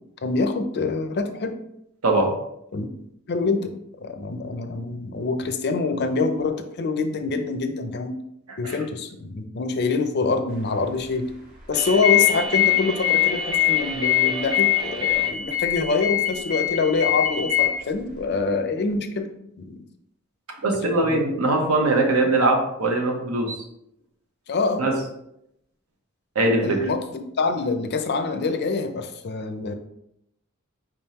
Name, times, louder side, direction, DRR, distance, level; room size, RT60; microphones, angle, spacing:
voice 1, 0.2-1.5 2.7-2.9 3.3-3.7 4.0-8.2 8.6-11.3 11.7-19.3 19.6-19.8 20.9-21.2 24.5-24.9 26.6-27.0 27.4-29.7, left 4 dB, 50° left, 7 dB, 0.5 m, -25 dB
sound 1, 11.7-15.4, right 2 dB, 20° right, 0.4 m, -36 dB
sound 2, 11.8-17.7, left 12 dB, 40° right, 1.2 m, -22 dB
voice 2, 20.6-23.6 24.8-24.9 26.3-26.8, right 2 dB, 75° right, 2 dB, 1.0 m, -21 dB
5.0 x 3.6 x 2.9 m, 0.78 s
head